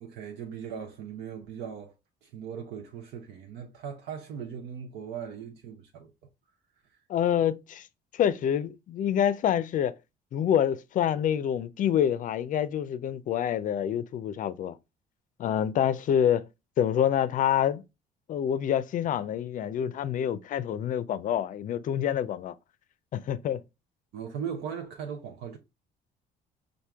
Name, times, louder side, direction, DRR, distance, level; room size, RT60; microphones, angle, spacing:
voice 1, 0.0-1.9 2.2-6.1 24.1-25.6, right 7 dB, 80° right, 0.8 m, -38 dB
voice 2, 7.1-7.9 8.1-10.0 10.3-14.8 15.4-16.5 16.8-17.8 18.3-22.6 23.1-23.6, left 9 dB, 50° left, 0.5 m, -27 dB
4.5 x 2.6 x 3.4 m
cardioid pair, 110°, 17 cm